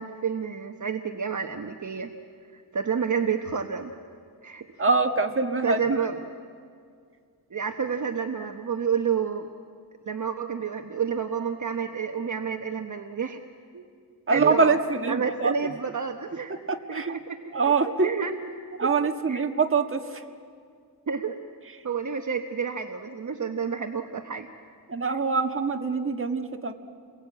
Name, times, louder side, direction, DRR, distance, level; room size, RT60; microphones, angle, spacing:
voice 1, 0.0-2.1 2.5-3.9 4.4-4.7 5.6-6.2 7.5-9.5 10.1-13.4 13.7-13.8 14.3-14.8 15.1-16.6 16.9-17.7 18.0-18.5 18.8-19.4 21.1-21.4 21.8-24.5, right 6 dB, 50° right, 5 dB, 1.1 m, -29 dB
voice 2, 4.8-5.9 14.3-15.5 16.7-17.2 17.5-18.1 18.8-20.2 24.9-26.7, right 4 dB, 35° right, 4 dB, 1.5 m, -24 dB
29.5 x 22.0 x 8.7 m, 2.2 s
wide cardioid pair, 140°, 39 cm